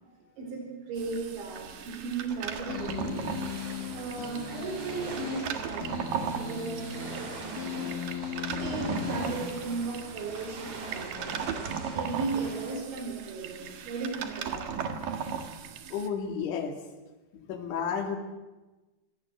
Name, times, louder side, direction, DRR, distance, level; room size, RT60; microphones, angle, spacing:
voice 1, 0.4-3.3 3.9-6.0 6.3-7.9 8.5-11.6 11.9-14.9, right 4 dB, 75° right, 2 dB, 6.4 m, -36 dB
sound 1, 1.0-16.1, right 7 dB, 60° right, 2.7 m, -37 dB
sound 2, 2.7-10.1, left 7 dB, 50° left, 4.1 m, -38 dB
sound 3, 2.9-12.8, right 2 dB, 45° right, 4.6 m, -44 dB
voice 2, 15.9-16.7 17.3-18.2, left 6 dB, 85° left, 5 dB, 4.8 m, -32 dB
25.5 x 18.5 x 7.8 m, 1.1 s
omnidirectional pair, 5.3 m